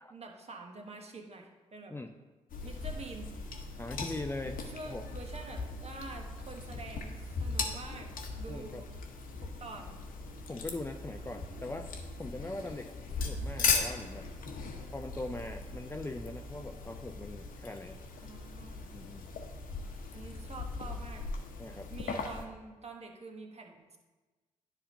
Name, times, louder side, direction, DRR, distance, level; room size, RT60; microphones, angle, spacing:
voice 1, 0.1-1.9 2.6-3.3 4.7-8.1 8.4-8.9 9.4-10.0 18.2-18.9 20.1-21.2 21.9-24.0, right 3 dB, 45° right, 2 dB, 1.2 m, -47 dB
sound 1, 2.5-22.4, left 4 dB, 70° left, 0.9 m, -38 dB
voice 2, 3.8-5.1 8.5-8.8 10.5-11.9 12.2-14.3 14.9-18.0 18.9-19.3 21.6-21.9, left 2 dB, 15° left, 5 dB, 0.5 m, -41 dB
10.0 x 3.4 x 5.0 m, 1.2 s
hypercardioid pair, 45°, 15 cm